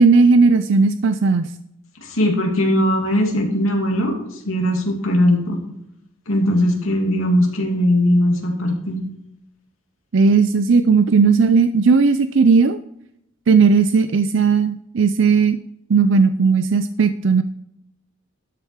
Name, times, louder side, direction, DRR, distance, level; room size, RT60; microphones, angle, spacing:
voice 1, 0.0-1.5 10.1-12.8 13.5-15.6 15.9-17.4, right 4 dB, 65° right, 11 dB, 0.5 m, -15 dB
voice 2, 2.0-5.6 6.3-9.0, left 1 dB, 85° left, 1 dB, 2.6 m, -19 dB
13.0 x 8.1 x 4.7 m, 0.77 s
head